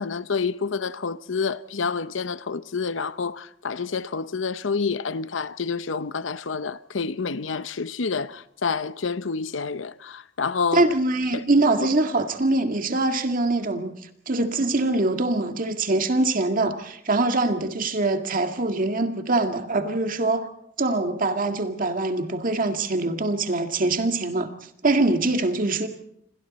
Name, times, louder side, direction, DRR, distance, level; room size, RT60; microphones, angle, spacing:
voice 1, 0.0-10.9 11.3-11.4, left 5 dB, 75° left, 0.8 m, -28 dB
voice 2, 10.7-14.0 14.3-20.5 20.8-24.5 24.8-25.9, right 2 dB, 45° right, 2.0 m, -23 dB
28.5 x 25.5 x 4.2 m
head